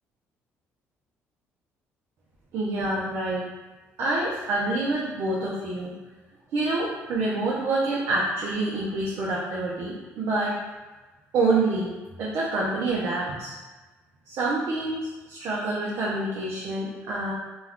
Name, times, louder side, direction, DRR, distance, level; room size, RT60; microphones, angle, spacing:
voice 1, 2.5-3.4 4.0-5.9 6.5-10.6 11.3-11.9 12.2-13.5 14.3-17.3, right 2 dB, 65° right, -5 dB, 0.5 m, -27 dB
2.2 x 2.2 x 3.5 m, 1.2 s
cardioid pair, 90°, 5 cm